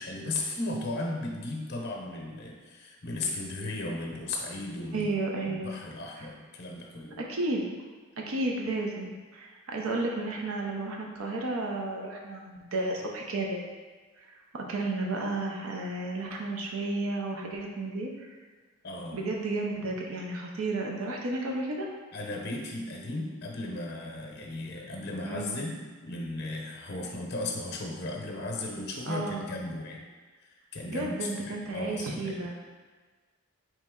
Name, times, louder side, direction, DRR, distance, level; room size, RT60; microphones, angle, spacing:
voice 1, 0.0-5.1 5.4-7.2 18.8-19.2 22.1-30.0 30.4-32.5, left 2 dB, 50° left, 0 dB, 0.7 m, -36 dB
voice 2, 4.9-5.7 6.2-6.3 7.2-7.7 8.2-13.6 14.2-18.3 19.1-21.9 25.2-25.6 29.1-29.4 30.9-32.6, right 2 dB, 80° right, 0 dB, 0.6 m, -32 dB
4.1 x 3.2 x 3.6 m, 1.4 s
head